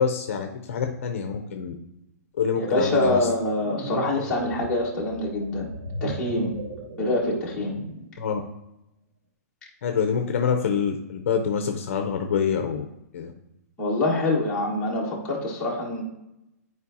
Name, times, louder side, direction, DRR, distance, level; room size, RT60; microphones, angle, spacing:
voice 1, 0.0-1.7 2.4-3.3 8.2-8.4 9.8-12.8 13.1-13.3, left 6 dB, 50° left, 4 dB, 0.6 m, -26 dB
voice 2, 2.6-5.7 6.0-6.6 7.0-7.8 13.8-16.0, left 2 dB, 10° left, -6 dB, 1.3 m, -25 dB
sound 1, 3.6-8.2, right 2 dB, 80° right, 1.1 m, -36 dB
11.0 x 4.6 x 2.8 m, 0.89 s
hypercardioid pair, 170°, 9 cm